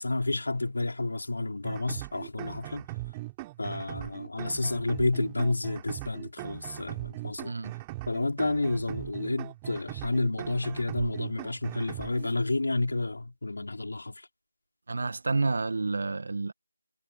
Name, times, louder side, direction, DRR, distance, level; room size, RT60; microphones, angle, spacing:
voice 1, 0.0-2.9 3.6-7.5 8.1-14.3, left 2 dB, 60° left, 4.6 m, -30 dB
sound 1, 1.6-12.3, right 20 dB, 15° right, 3.9 m, -40 dB
voice 2, 14.9-16.5, right 3 dB, 50° right, 1.4 m, -29 dB
figure-of-eight pair, 165°, 0 cm